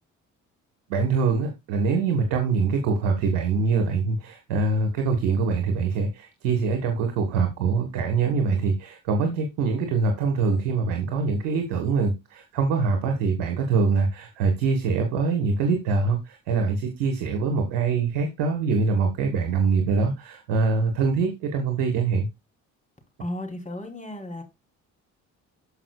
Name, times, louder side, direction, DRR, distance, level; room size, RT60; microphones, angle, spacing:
voice 1, 0.9-22.3, right 4 dB, 80° right, 1.5 m, -24 dB
voice 2, 23.2-24.4, left 1 dB, 20° left, 3.2 m, -34 dB
13.5 x 4.9 x 2.3 m
hypercardioid pair, 50°, 38 cm